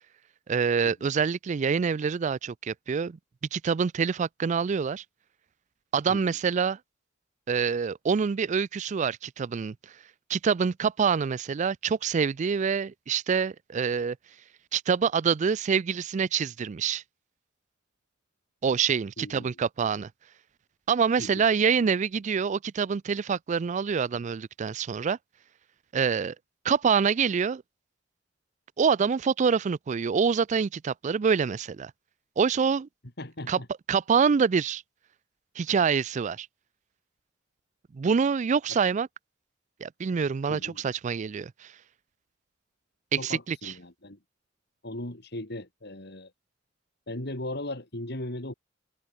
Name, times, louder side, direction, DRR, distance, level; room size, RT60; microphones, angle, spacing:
voice 1, 0.5-3.2 3.5-5.0 5.9-6.8 7.5-9.7 10.3-14.2 14.7-17.0 18.6-20.1 20.9-25.2 25.9-26.3 26.6-27.6 28.8-31.9 32.4-32.9 33.5-33.6 33.9-34.8 35.6-36.5 37.9-39.1 39.8-41.7 43.1-43.7, right 6 dB, 40° right, 0.4 m, -26 dB
voice 2, 19.2-19.6 21.2-21.4 33.2-33.7 40.5-40.8 43.2-44.2 44.8-46.3 47.1-48.5, left 1 dB, 60° left, 3.7 m, -38 dB
head